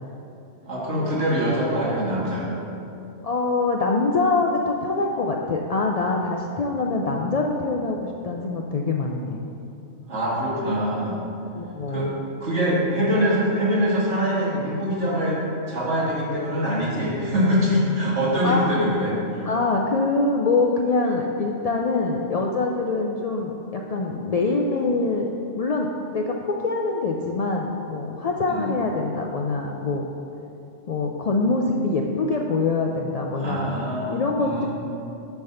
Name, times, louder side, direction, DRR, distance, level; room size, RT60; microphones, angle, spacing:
voice 1, 0.7-2.6 10.1-11.2 11.9-12.1 12.4-19.5 28.5-28.7 33.3-34.7, equal, 70° right, -7 dB, 2.1 m, -24 dB
voice 2, 3.2-9.4 11.5-12.1 18.4-18.8 19.4-25.3 25.6-30.1 30.9-33.7 34.1-34.7, left 3 dB, 80° left, 0 dB, 0.3 m, -24 dB
9.5 x 3.4 x 5.6 m, 2.7 s
omnidirectional pair, 1.3 m